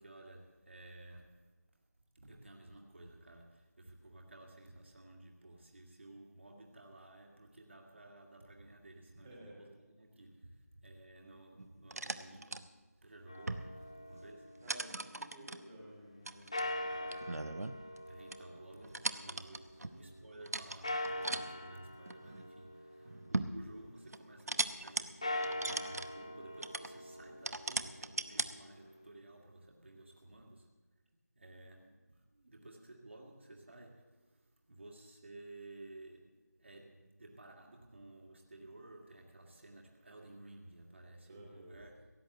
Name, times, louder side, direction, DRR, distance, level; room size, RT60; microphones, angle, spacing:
voice 1, 0.0-1.5 2.2-14.6 18.1-30.7 31.4-42.0, right 2 dB, 45° right, 1.9 m, -55 dB
voice 2, 9.2-9.6 14.6-17.5 19.6-19.8 41.2-41.8, right 1 dB, 10° right, 1.6 m, -54 dB
sound 1, 11.6-12.6 13.4-13.8 14.1-14.3 14.7-15.6 16.3-18.0 18.3-18.4 18.8-20.0 20.5-21.4 22.1-22.5 23.0-23.6 24.1-25.0 25.4-26.1 26.6-26.9 27.5-28.5, right 2 dB, 65° right, 0.8 m, -38 dB
sound 2, 13.3-15.4 16.5-19.9 20.8-23.8 25.1-29.1, left 1 dB, 20° left, 0.6 m, -43 dB
16.5 x 8.3 x 7.7 m
figure-of-eight pair, 175°, 9 cm